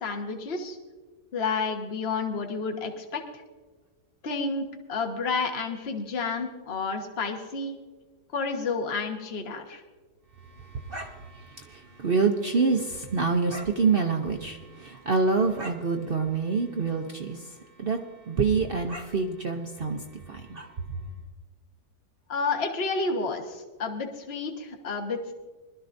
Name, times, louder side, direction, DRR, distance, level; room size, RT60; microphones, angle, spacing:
voice 1, 0.0-0.8 1.3-3.2 4.2-7.8 8.3-9.8 22.3-25.3, left 4 dB, 40° left, 3 dB, 1.4 m, -30 dB
voice 2, 10.5-18.0 18.3-21.0, right 4 dB, 55° right, 4 dB, 0.6 m, -27 dB
21.0 x 12.5 x 2.6 m, 1.4 s
omnidirectional pair, 1.8 m